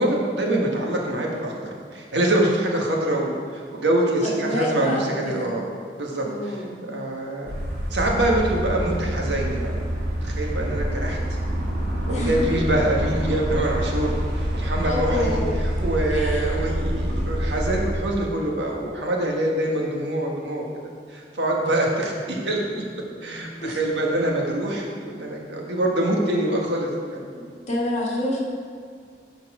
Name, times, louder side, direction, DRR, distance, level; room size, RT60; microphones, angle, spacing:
voice 1, 0.0-5.7 6.0-7.5 7.9-9.7 10.2-11.4 12.1-20.7 21.1-22.8 23.2-27.3, right 1 dB, 80° right, -1 dB, 1.5 m, -25 dB
voice 2, 4.2-5.5 6.2-6.8 12.1-12.4 14.8-15.6 16.1-16.4 23.6-23.8 27.3-28.4, left 1 dB, 40° left, -3 dB, 1.7 m, -28 dB
sound 1, 7.5-17.9, equal, 65° right, 2.5 m, -26 dB
12.5 x 4.5 x 4.9 m, 2.1 s
head